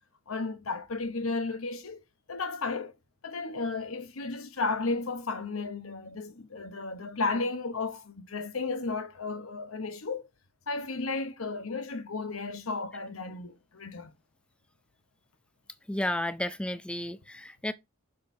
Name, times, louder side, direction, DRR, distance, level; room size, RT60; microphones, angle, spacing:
voice 1, 0.3-2.0 2.3-2.9 3.2-10.3 10.7-14.1, left 3 dB, 75° left, 0.9 m, -33 dB
voice 2, 15.9-17.7, left 1 dB, 5° left, 0.4 m, -32 dB
6.7 x 5.5 x 2.7 m
head